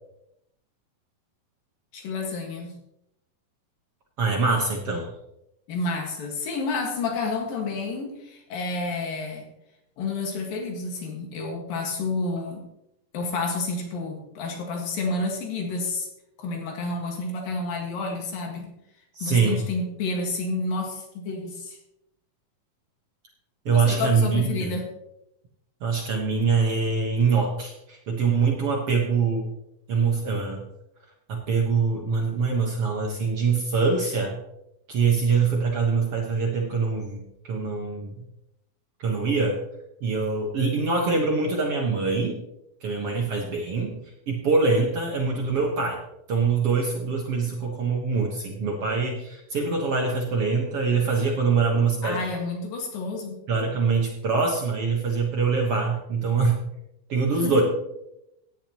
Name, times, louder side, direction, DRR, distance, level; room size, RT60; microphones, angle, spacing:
voice 1, 1.9-2.8 5.7-9.5 10.0-12.6 13.1-16.1 16.4-18.8 19.2-21.8 23.7-24.8 52.0-53.4 57.4-57.6, left 3 dB, 80° left, 1 dB, 3.6 m, -30 dB
voice 2, 4.2-5.1 19.1-19.6 23.7-24.7 25.8-29.5 29.9-30.6 31.3-34.4 34.9-38.1 39.0-39.6 40.0-42.4 42.8-44.0 44.3-46.0 46.3-52.2 53.5-56.6 57.1-57.6, right 4 dB, 55° right, 0 dB, 1.8 m, -24 dB
15.5 x 10.0 x 3.0 m, 0.84 s
omnidirectional pair, 4.0 m